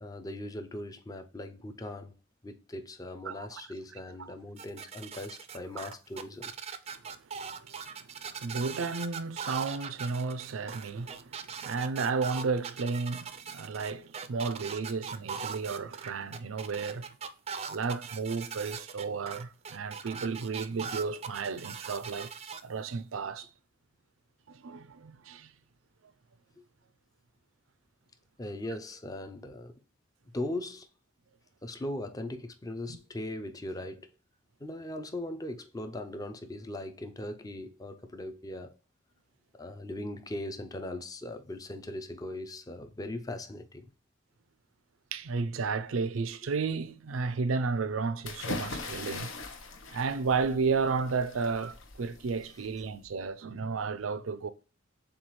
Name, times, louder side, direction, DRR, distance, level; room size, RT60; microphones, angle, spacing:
voice 1, 0.0-2.1 2.4-6.5 28.4-29.7 30.3-30.9 31.6-34.1 34.6-38.7 39.6-43.9, left 1 dB, 20° left, 0.5 m, -39 dB
voice 2, 3.3-3.6 4.2-4.3 7.4-8.0 8.3-17.1 17.7-22.3 22.6-23.5 24.5-25.5 32.9-33.0 45.1-49.3 49.9-54.5, right 4 dB, 85° right, 0.5 m, -33 dB
sound 1, 4.6-22.6, right 6 dB, 30° right, 0.4 m, -40 dB
sound 2, 48.2-53.1, left 3 dB, 75° left, 0.9 m, -41 dB
7.1 x 2.4 x 3.1 m
head